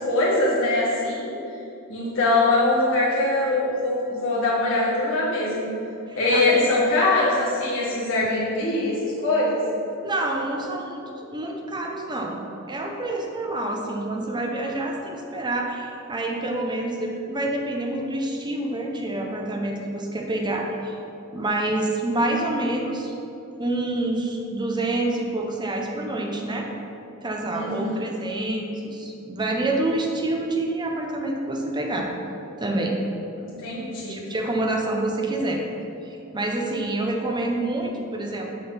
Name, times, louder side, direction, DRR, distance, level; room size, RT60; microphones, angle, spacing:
voice 1, 0.0-1.3 1.9-5.7 6.2-9.6 27.5-28.0 33.4-34.2, left 2 dB, 65° left, -8 dB, 1.4 m, -22 dB
voice 2, 6.1-6.6 10.0-11.0 11.3-12.4 12.7-21.0 21.3-23.1 23.6-26.7 27.2-32.1 32.6-33.0 34.1-35.6 36.3-38.5, right 2 dB, 20° right, 1 dB, 0.7 m, -27 dB
6.5 x 3.8 x 5.9 m, 2.7 s
head